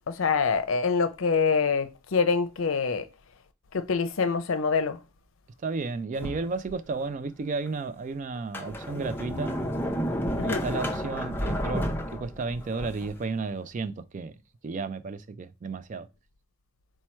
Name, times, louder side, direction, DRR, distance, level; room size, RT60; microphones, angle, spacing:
voice 1, 0.1-3.1 3.7-5.0 10.4-10.6, left 5 dB, 75° left, 0.5 m, -25 dB
voice 2, 5.6-9.6 10.4-11.9 12.1-14.3 14.6-16.1, right 4 dB, 40° right, 0.3 m, -33 dB
Sliding door, 6.2-7.1 7.7-7.8 8.3-13.2, equal, 10° left, 0.6 m, -31 dB
4.4 x 2.2 x 4.3 m
head